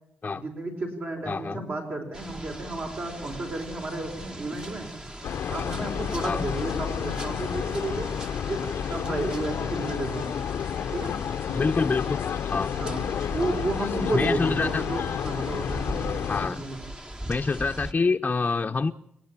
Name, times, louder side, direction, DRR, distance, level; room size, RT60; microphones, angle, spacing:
voice 1, 0.3-4.9 5.5-8.1 8.5-10.3 10.9-11.1 11.5-11.6 12.7-13.0 13.3-15.9 16.4-16.8 17.2-17.4, right 2 dB, 50° right, 2 dB, 5.1 m, -32 dB
voice 2, 1.3-1.6 6.2-6.5 11.5-12.2 12.5-12.7 14.1-14.9 16.3-16.6 17.3-18.9, left 4 dB, 35° left, 3 dB, 0.8 m, -26 dB
sound 1, 2.1-17.9, right 1 dB, 20° right, 1.4 m, -40 dB
sound 2, 5.2-16.5, left 8 dB, 65° left, 0.8 m, -30 dB
29.5 x 10.0 x 9.0 m, 0.77 s
supercardioid pair, 50°, 4 cm